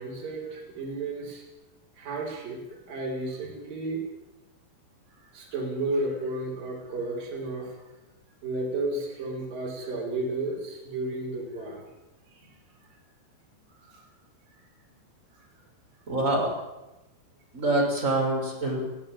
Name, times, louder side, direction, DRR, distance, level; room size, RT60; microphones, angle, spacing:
voice 1, 0.0-1.4 2.0-4.0 5.2-7.8 8.4-11.9 12.4-12.5 12.9-13.0 13.7-14.0 15.4-15.5, right 2 dB, 55° right, -2 dB, 7.0 m, -33 dB
voice 2, 16.1-16.5 17.5-18.9, right 2 dB, 15° right, -1 dB, 6.4 m, -25 dB
23.0 x 16.0 x 9.1 m, 1.0 s
omnidirectional pair, 4.8 m